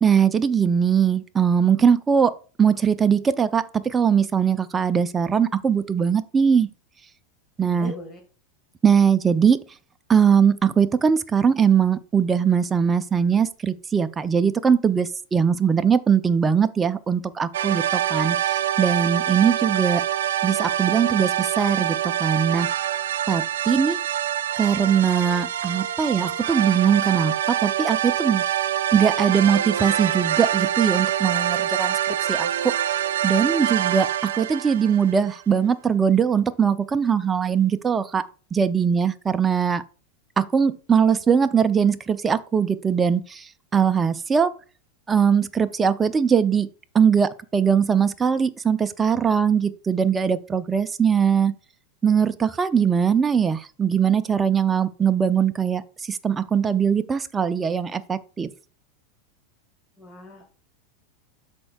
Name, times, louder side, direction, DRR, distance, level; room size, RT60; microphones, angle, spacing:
voice 1, 0.0-2.3 2.6-6.7 7.6-7.9 8.8-9.6 10.1-20.0 20.4-22.7 23.3-24.0 24.6-27.3 27.6-28.4 28.9-32.7 33.2-38.2 38.5-39.8 40.4-44.5 45.1-46.7 46.9-51.5 52.0-58.5, right 7 dB, 20° right, 0.6 m, -21 dB
voice 2, 7.7-8.2 60.0-60.5, left 1 dB, 15° left, 2.2 m, -39 dB
sound 1, 17.5-35.4, right 11 dB, 80° right, 0.4 m, -25 dB
13.0 x 4.5 x 2.4 m
hypercardioid pair, 110°, 0 cm